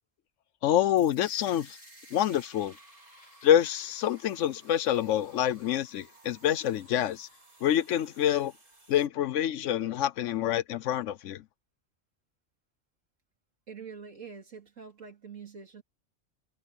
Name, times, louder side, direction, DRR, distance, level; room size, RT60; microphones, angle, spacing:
voice 1, 0.6-1.8 2.1-2.8 3.4-7.3 7.6-8.5 8.9-11.4, left 11 dB, 75° left, 1.0 m, -27 dB
sound 1, 1.0-7.0, left 1 dB, 35° left, 5.8 m, -61 dB
sound 2, 1.2-9.1, right 1 dB, 40° right, 5.3 m, -56 dB
voice 2, 13.7-15.8, right 6 dB, 80° right, 3.0 m, -45 dB
omnidirectional pair, 1.3 m